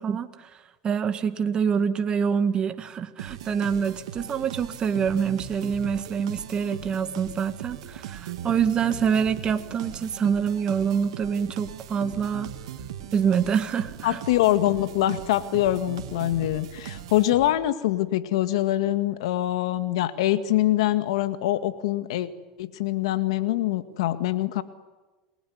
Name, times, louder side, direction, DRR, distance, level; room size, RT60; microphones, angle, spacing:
voice 1, 0.0-12.5 13.1-14.2, right 7 dB, 30° right, 9 dB, 1.9 m, -26 dB
sound 1, 3.2-17.8, right 10 dB, 80° right, 2.6 m, -39 dB
voice 2, 14.0-22.3 22.6-24.6, left 14 dB, 80° left, 11 dB, 1.8 m, -24 dB
29.0 x 20.5 x 9.6 m, 1.2 s
supercardioid pair, 105°, 3 cm